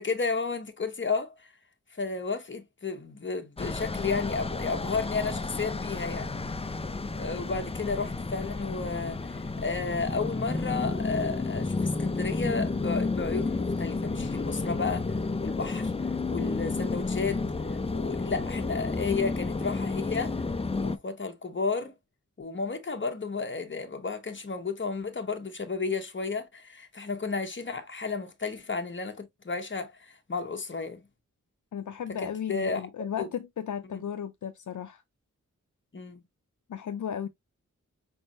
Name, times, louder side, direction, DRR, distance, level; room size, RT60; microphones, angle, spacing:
voice 1, 0.0-1.5 1.9-6.3 7.1-15.9 16.3-20.4 20.8-21.9 22.4-31.0 32.2-32.8 33.2-33.3 33.9-34.0 35.9-36.2, left 4 dB, 40° left, 1.0 m, -32 dB
sound 1, 3.6-21.0, left 3 dB, 20° left, 0.4 m, -31 dB
voice 2, 31.7-35.0 36.7-37.3, left 8 dB, 70° left, 0.5 m, -35 dB
5.2 x 3.5 x 2.6 m
wide cardioid pair, 90°, 31 cm